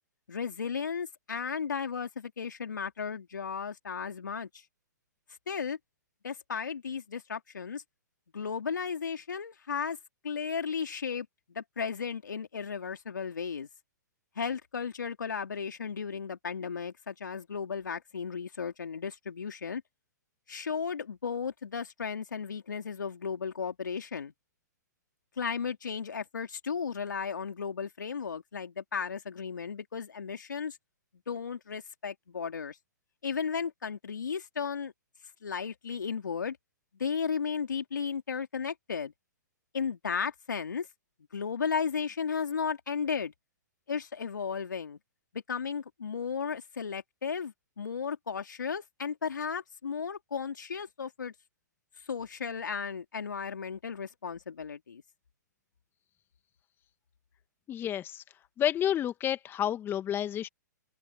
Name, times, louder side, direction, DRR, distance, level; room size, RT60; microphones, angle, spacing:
voice 1, 0.3-4.6 5.5-5.8 6.2-7.8 8.3-10.0 10.2-13.7 14.3-19.8 20.5-24.3 25.4-30.8 31.3-32.8 33.2-34.9 35.4-36.6 36.9-39.1 39.7-40.9 41.3-43.3 43.9-45.0 45.3-51.3 52.1-55.0, left 6 dB, 80° left, 3.2 m, -35 dB
voice 2, 57.7-58.2 58.6-60.5, left 10 dB, 20° left, 1.6 m, -30 dB
hypercardioid pair, 120°, 10 cm